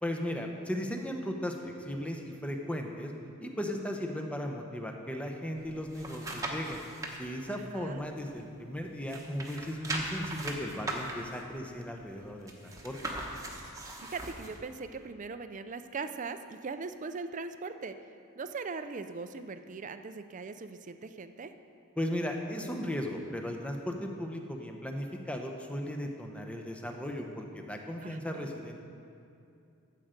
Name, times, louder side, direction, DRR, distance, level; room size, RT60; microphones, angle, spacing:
voice 1, 0.0-3.1 3.4-6.8 7.2-13.0 22.0-28.8, equal, 5° left, 2 dB, 0.8 m, -36 dB
sound 1, 5.6-7.2 7.7-8.8 9.0-14.6 15.0-15.1, right 2 dB, 15° right, 1.1 m, -39 dB
voice 2, 7.5-8.0 14.1-18.0 18.4-21.5 28.0-28.5, right 4 dB, 35° right, 10 dB, 0.4 m, -40 dB
13.5 x 7.6 x 5.1 m, 2.6 s
head